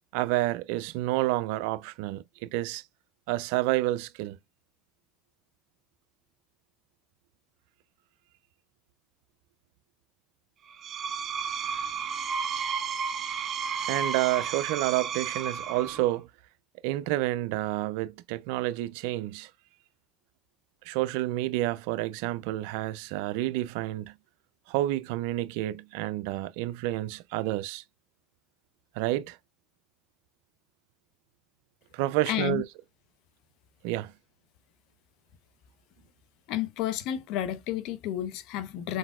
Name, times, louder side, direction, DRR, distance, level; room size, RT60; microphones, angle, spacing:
voice 1, 0.1-2.8 3.3-4.4 13.9-16.3 16.8-19.5 20.9-24.1 24.7-27.8 29.0-29.4 31.9-32.6 33.8-34.1, right 16 dB, 80° right, 0.4 m, -29 dB
Screech, 10.7-16.2, right 6 dB, 45° right, 0.7 m, -32 dB
voice 2, 32.3-32.6 36.5-39.0, left 11 dB, 70° left, 0.9 m, -31 dB
4.9 x 3.9 x 2.4 m
supercardioid pair, 95°, 0 cm